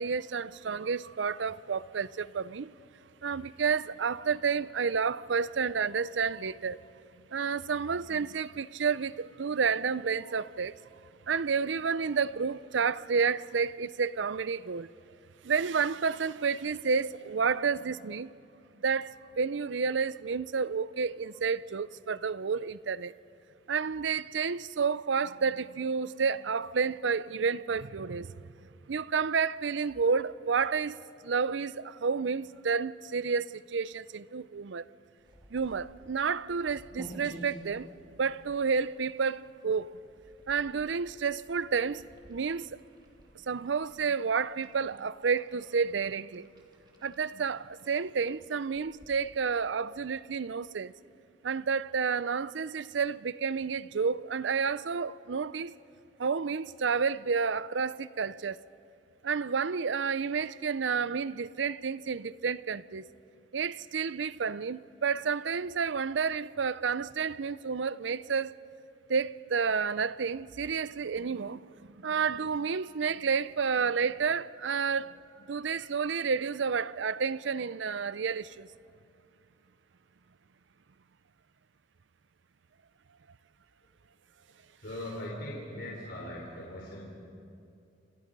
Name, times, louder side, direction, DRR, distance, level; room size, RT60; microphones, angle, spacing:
voice 1, 0.0-2.7 3.2-6.8 7.3-10.7 11.3-14.9 15.4-18.3 18.8-23.1 23.7-28.3 28.9-31.0 31.2-34.8 35.5-37.9 38.2-39.9 40.5-42.0 42.3-42.7 43.5-46.5 47.0-50.9 51.4-55.7 56.2-58.6 59.2-63.1 63.5-68.5 69.1-71.6 72.0-75.1 75.5-78.7, right 5 dB, 75° right, 0.5 m, -30 dB
sound 1, 35.2-49.7, equal, 25° right, 3.0 m, -53 dB
voice 2, 84.8-87.0, left 1 dB, 60° left, 4.2 m, -40 dB
29.0 x 26.0 x 5.4 m
head